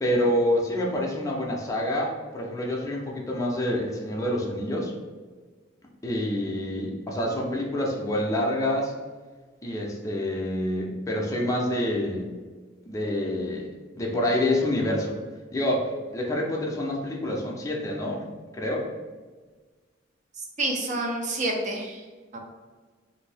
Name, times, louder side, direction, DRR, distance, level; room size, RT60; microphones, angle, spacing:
voice 1, 0.0-4.9 6.0-8.9 9.6-12.2 12.9-13.7 13.9-15.1 15.5-18.3 18.5-18.9, left 1 dB, 15° left, -2 dB, 0.5 m, -27 dB
voice 2, 20.4-22.0 22.3-22.4, right 2 dB, 40° right, 1 dB, 0.6 m, -29 dB
2.6 x 2.6 x 3.3 m, 1.4 s
head